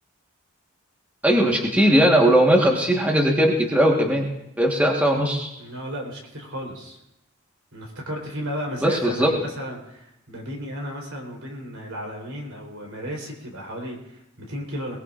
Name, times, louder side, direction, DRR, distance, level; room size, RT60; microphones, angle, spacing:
voice 1, 1.2-4.3 4.6-5.5 8.8-9.3, equal, 5° right, -1 dB, 1.4 m, -19 dB
voice 2, 5.6-7.0 7.7-15.0, equal, 70° right, 0 dB, 3.9 m, -34 dB
21.5 x 19.0 x 2.5 m, 0.84 s
head